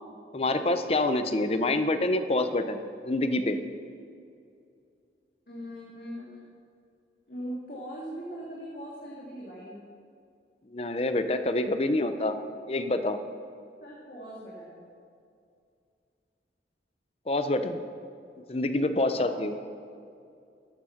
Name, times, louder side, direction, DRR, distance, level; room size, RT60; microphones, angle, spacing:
voice 1, 0.3-2.8 3.0-3.6 10.7-12.4 12.7-13.2 17.3-17.8 18.5-19.5, left 2 dB, 35° left, 9 dB, 0.6 m, -26 dB
voice 2, 5.5-6.5 7.3-9.8 13.8-14.8 19.1-19.4, equal, 55° left, -5 dB, 2.0 m, -40 dB
13.5 x 7.5 x 5.7 m, 2.4 s
head